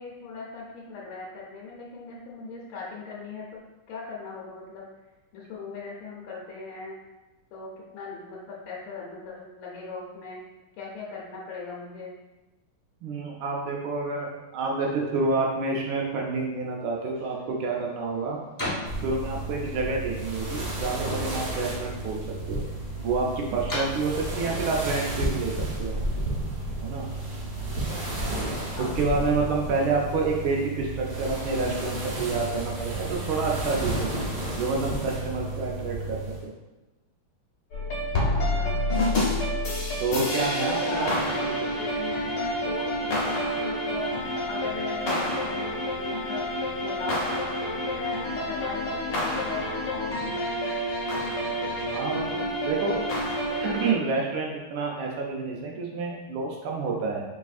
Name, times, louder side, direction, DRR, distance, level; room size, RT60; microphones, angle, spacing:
voice 1, 0.0-3.6 3.9-4.9 5.3-7.0 7.5-10.4 10.8-12.1 27.6-28.1 28.7-29.0 38.1-38.9 40.6-44.2 44.5-46.5 46.8-47.2 47.6-50.4 52.8-53.1, left 4 dB, 80° left, -5 dB, 1.5 m, -39 dB
voice 2, 13.0-18.4 19.0-22.2 22.5-22.6 23.0-26.0 26.8-27.1 28.8-34.1 34.6-36.5 40.0-41.1 41.4-41.8 51.8-53.0 53.5-57.2, right 3 dB, 80° right, -1 dB, 1.4 m, -28 dB
sound 1, 16.9-26.1, left 1 dB, 15° left, 0.7 m, -41 dB
sound 2, 18.9-36.4, right 2 dB, 60° right, 1.3 m, -32 dB
sound 3, 37.7-53.9, left 1 dB, 65° left, 1.3 m, -28 dB
4.8 x 3.3 x 2.4 m, 1.1 s
omnidirectional pair, 2.3 m